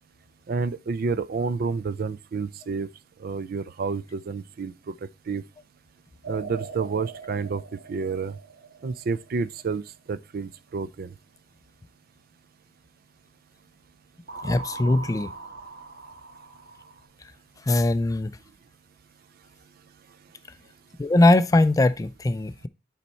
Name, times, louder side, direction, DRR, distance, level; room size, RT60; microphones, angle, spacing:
voice 1, 0.5-2.9 3.2-4.7 5.3-5.4 6.3-7.6 7.9-8.3 8.8-9.8 10.1-11.1, right 4 dB, 55° right, 0.4 m, -29 dB
sound 1, 6.2-9.5 14.3-17.1, right 4 dB, 70° right, 1.7 m, -41 dB
voice 2, 14.4-15.3 17.7-18.3 21.0-22.7, left 2 dB, 20° left, 0.3 m, -20 dB
8.3 x 4.2 x 4.2 m
head